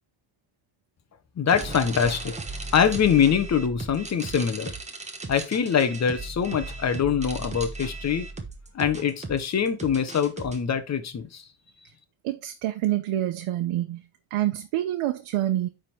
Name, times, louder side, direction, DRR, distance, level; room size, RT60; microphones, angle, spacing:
voice 1, 1.4-2.3 2.7-4.7 5.3-8.3 8.7-11.4, left 7 dB, 35° left, 1.1 m, -24 dB
sound 1, 1.5-10.6, right 3 dB, 15° right, 1.1 m, -36 dB
voice 2, 12.2-14.0 14.3-15.7, right 13 dB, 85° right, 1.0 m, -27 dB
9.6 x 3.9 x 4.5 m
cardioid pair, 155°, 50 cm